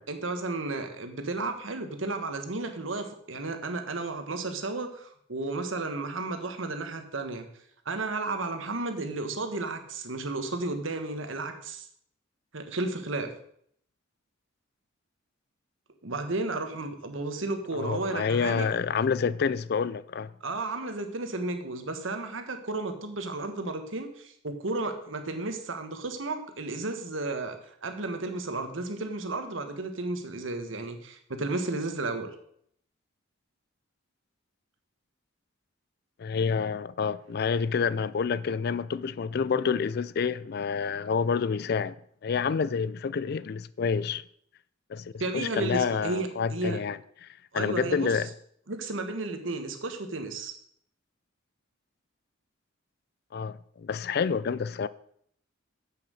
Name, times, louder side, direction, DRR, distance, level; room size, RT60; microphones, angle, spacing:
voice 1, 0.1-7.5 7.8-11.9 12.5-13.3 16.0-18.6 20.4-32.3 45.2-46.8 47.5-48.1 48.7-50.5, right 2 dB, 70° right, 1.3 m, -33 dB
voice 2, 17.7-20.3 36.2-42.0 42.2-44.2 44.9-47.3 47.5-48.3 53.3-54.9, left 6 dB, 50° left, 0.4 m, -28 dB
7.7 x 7.3 x 6.4 m
head